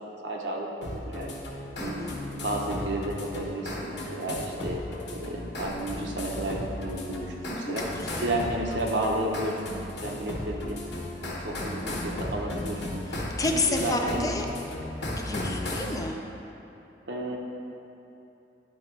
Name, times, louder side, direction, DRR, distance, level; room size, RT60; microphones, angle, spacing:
voice 1, 0.1-1.4 1.8-2.0 2.3-4.8 5.1-7.8 8.2-10.8 11.2-13.0 13.5-14.3 15.3-15.6 17.1-17.4, right 1 dB, 80° right, 0 dB, 1.0 m, -32 dB
sound 1, 0.8-16.0, left 1 dB, 70° left, 1.3 m, -35 dB
voice 2, 1.8-2.2 7.4-8.2 13.1-14.5 15.1-16.2, left 2 dB, 20° left, 2 dB, 0.5 m, -31 dB
10.5 x 3.9 x 4.6 m, 2.9 s
head